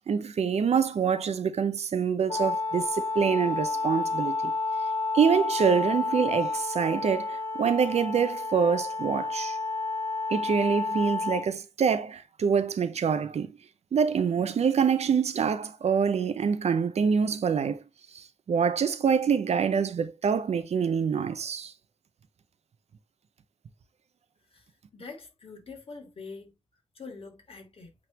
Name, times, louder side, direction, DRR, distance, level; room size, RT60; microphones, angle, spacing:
voice 1, 0.1-4.5 5.1-9.6 10.3-13.6 13.9-17.8 18.1-21.7, right 6 dB, 85° right, 0.8 m, -26 dB
Wind instrument woodwind instrument, 2.3-11.5, left 3 dB, 40° left, 4.4 m, -30 dB
voice 2, 24.9-26.6 26.9-27.9, left 4 dB, 60° left, 2.9 m, -44 dB
8.7 x 3.7 x 3.0 m
wide cardioid pair, 120°, 11 cm